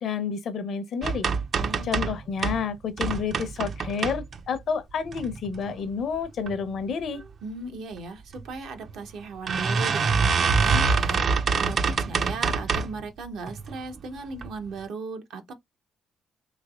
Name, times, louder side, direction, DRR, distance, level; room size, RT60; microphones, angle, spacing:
voice 1, 0.0-1.3 1.8-7.2, left 6 dB, 65° left, 0.6 m, -30 dB
sound 1, 1.0-2.6 3.0-4.6 5.1-5.7 6.1-6.5 6.8-6.9 7.2-7.3 8.3-8.4 8.8-8.9 9.5-13.0 13.5-13.9 14.4-14.5 14.8-14.9, right 5 dB, 55° right, 0.4 m, -25 dB
voice 2, 1.5-2.1 7.4-15.5, right 3 dB, 80° right, 0.8 m, -37 dB
3.2 x 3.0 x 2.3 m
cardioid pair, 90°, 0 cm